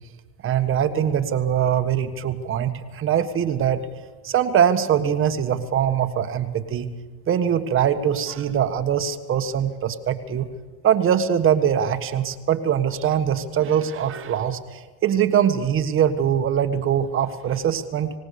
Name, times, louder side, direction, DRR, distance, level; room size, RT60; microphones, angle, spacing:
voice 1, 0.4-3.8 4.2-6.9 7.3-10.4 10.8-18.1, right 9 dB, 35° right, 8 dB, 1.5 m, -22 dB
26.5 x 18.0 x 6.9 m, 1.3 s
supercardioid pair, 120°, 35 cm